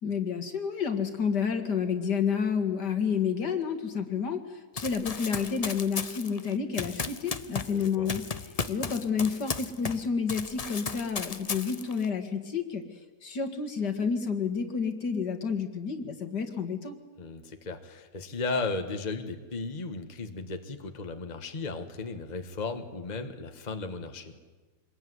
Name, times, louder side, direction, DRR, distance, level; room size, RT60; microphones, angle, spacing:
voice 1, 0.0-12.8 13.2-17.0, left 6 dB, 60° left, 7 dB, 2.5 m, -30 dB
Run, 4.8-10.0 10.3-12.1, left 5 dB, 40° left, 0.5 m, -35 dB
voice 2, 7.7-8.2 17.2-24.4, left 3 dB, 25° left, 6 dB, 1.6 m, -35 dB
25.5 x 20.5 x 9.6 m, 1.3 s
omnidirectional pair, 2.0 m